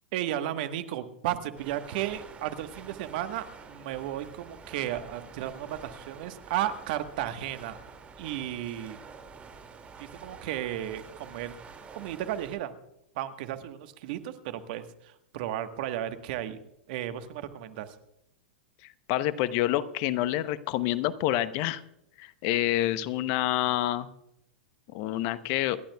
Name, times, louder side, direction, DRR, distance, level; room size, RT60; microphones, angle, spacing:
voice 1, 0.1-7.8 8.2-9.0 10.0-11.6 11.9-12.7 13.1-16.6 16.9-17.9, right 12 dB, 55° right, 9 dB, 1.3 m, -34 dB
sound 1, 1.5-12.6, right 5 dB, 20° right, 2.3 m, -48 dB
voice 2, 19.1-21.8 22.2-24.1 24.9-25.8, left 14 dB, 50° left, 15 dB, 0.8 m, -27 dB
28.0 x 11.5 x 2.3 m, 0.81 s
hypercardioid pair, 100°, 6 cm